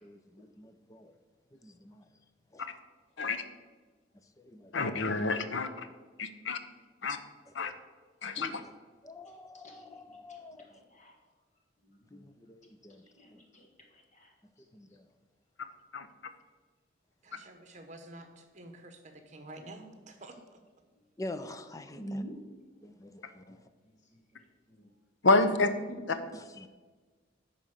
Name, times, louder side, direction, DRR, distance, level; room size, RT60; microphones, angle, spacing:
voice 1, 0.0-1.1 1.5-2.0 2.5-2.7 3.2-3.4 4.4-4.9 7.5-7.6 8.4-8.7 9.0-10.7 12.1-13.0 13.3-13.4 14.7-15.1 21.2-22.2 22.8-23.6 26.3-26.7, left 2 dB, 20° left, 0.5 m, -47 dB
voice 2, 4.7-5.9 6.2-6.6 7.0-7.2 7.5-7.7 8.2-8.6 15.9-16.1 25.2-25.7 26.1-26.2, left 3 dB, 75° left, 0.8 m, -28 dB
voice 3, 9.2-11.1 11.8-12.2 13.0-14.6 21.9-22.4 23.4-23.6 24.3-24.4 24.7-24.9 25.9-26.2, right 1 dB, 40° left, 1.7 m, -47 dB
voice 4, 17.2-18.3 18.5-19.0 19.3-20.3, right 2 dB, 40° right, 1.2 m, -48 dB
10.5 x 4.3 x 6.5 m
head